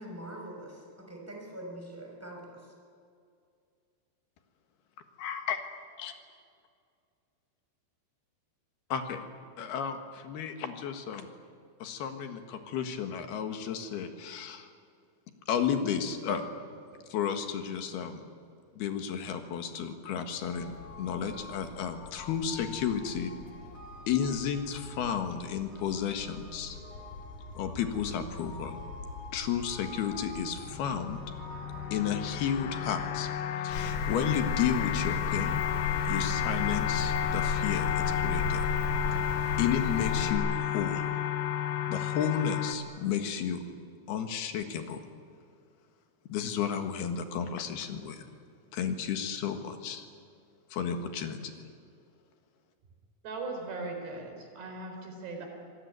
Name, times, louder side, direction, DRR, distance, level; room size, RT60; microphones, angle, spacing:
voice 1, 0.0-2.7, right 1 dB, 5° right, 0 dB, 5.5 m, -43 dB
voice 2, 5.2-5.6 6.0-6.1 8.9-9.2 9.6-11.3 11.8-14.7 15.5-16.4 17.1-18.2 18.8-23.3 24.1-26.8 27.5-28.8 29.3-31.2 31.9-33.3 33.6-35.6 36.1-38.6 39.6-41.1 41.9-43.6 44.1-45.0 46.3-48.3 48.7-50.1 50.7-51.4, left 8 dB, 70° left, 6 dB, 3.6 m, -32 dB
sound 1, 20.4-33.2, left 2 dB, 40° left, 4.1 m, -45 dB
sound 2, 30.7-42.8, left 11 dB, 85° left, 3.5 m, -32 dB
sound 3, 33.7-40.3, left 3 dB, 55° left, 6.0 m, -34 dB
voice 3, 53.2-55.5, right 3 dB, 75° right, 3 dB, 6.4 m, -39 dB
26.0 x 19.0 x 9.5 m, 2.3 s
omnidirectional pair, 4.8 m